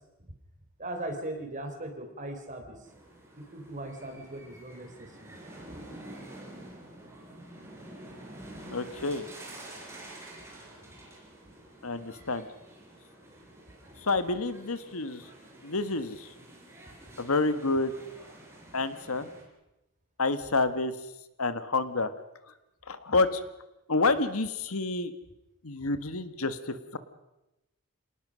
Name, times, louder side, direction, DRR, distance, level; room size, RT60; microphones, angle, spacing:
voice 1, 0.8-2.9 3.4-5.4 5.7-5.8 16.9-17.0, right 1 dB, 35° right, 5 dB, 3.6 m, -39 dB
sound 1, 2.8-19.4, right 1 dB, 10° right, 4.6 m, -49 dB
voice 2, 8.7-9.2 11.8-12.5 14.0-15.2 15.6-16.3 17.2-17.9 18.7-19.3 20.2-20.9 21.4-22.1 22.9-23.4 23.9-25.1 25.6-27.0, left 3 dB, 75° left, 12 dB, 1.5 m, -28 dB
27.0 x 19.0 x 6.3 m, 0.96 s
head